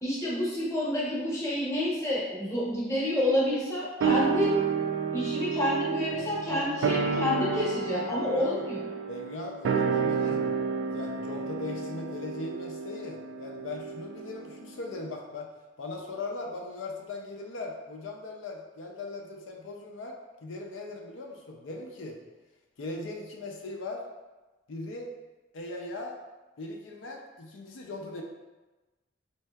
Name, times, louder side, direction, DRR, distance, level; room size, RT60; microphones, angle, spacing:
voice 1, 0.0-4.6 5.1-8.8, left 1 dB, 15° left, -6 dB, 0.8 m, -28 dB
sound 1, 4.0-14.6 14.9-15.0, right 5 dB, 80° right, 0.3 m, -30 dB
voice 2, 6.1-7.0 8.2-8.6 9.1-10.5 10.9-15.5 15.8-20.2 20.4-22.2 22.8-24.0 24.7-25.1 25.5-26.2 26.6-28.2, left 2 dB, 80° left, 1 dB, 0.4 m, -39 dB
4.3 x 2.7 x 2.2 m, 1.1 s
head